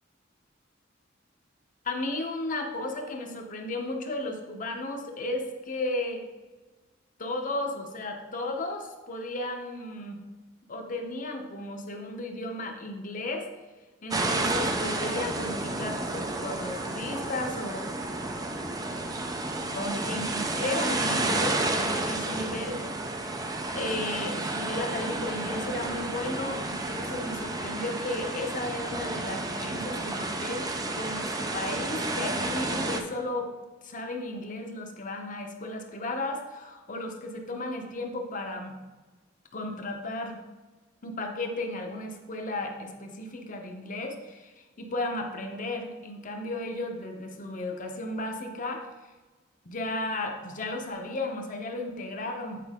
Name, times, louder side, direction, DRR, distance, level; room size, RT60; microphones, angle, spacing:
voice 1, 1.8-6.2 7.2-10.2 10.7-13.5 14.0-17.9 19.7-22.8 23.7-30.7 30.9-33.5 33.8-38.7 39.5-40.4 41.0-48.9 49.6-52.6, left 2 dB, 45° left, 3 dB, 0.9 m, -34 dB
sound 1, 14.1-33.0, right 2 dB, 20° right, 0.5 m, -31 dB
8.4 x 4.6 x 3.6 m, 1.2 s
head